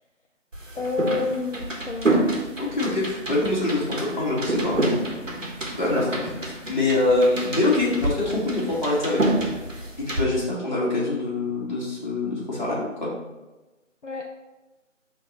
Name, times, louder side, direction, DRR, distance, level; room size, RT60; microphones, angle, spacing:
sound 1, 0.5-10.2, right 2 dB, 75° right, 1.5 m, -28 dB
voice 1, 0.8-2.2 14.0-14.3, left 3 dB, 65° left, 1 dB, 0.8 m, -29 dB
voice 2, 2.6-5.0 5.4-5.5 5.8-9.2 10.0-13.1, left 2 dB, 35° left, -7 dB, 2.1 m, -24 dB
10.0 x 3.6 x 3.1 m, 1.1 s
figure-of-eight pair, 165°, 39 cm